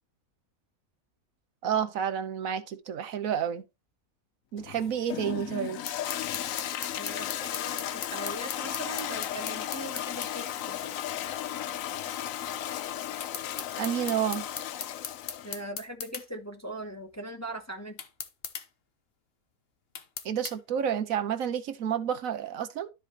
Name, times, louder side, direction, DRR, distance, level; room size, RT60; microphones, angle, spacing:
voice 1, 1.6-3.6 4.5-5.8 13.8-14.5 20.2-22.9, right 8 dB, 75° right, 1.2 m, -30 dB
Toilet flush, 4.6-15.6, left 11 dB, 75° left, 1.0 m, -35 dB
sound 1, 5.9-10.3 13.2-16.3 18.0-18.7 19.9-20.6, left 6 dB, 50° left, 1.0 m, -38 dB
voice 2, 7.0-10.9 15.4-18.0, right 1 dB, 15° left, 0.9 m, -40 dB
13.0 x 5.0 x 2.9 m
omnidirectional pair, 1.5 m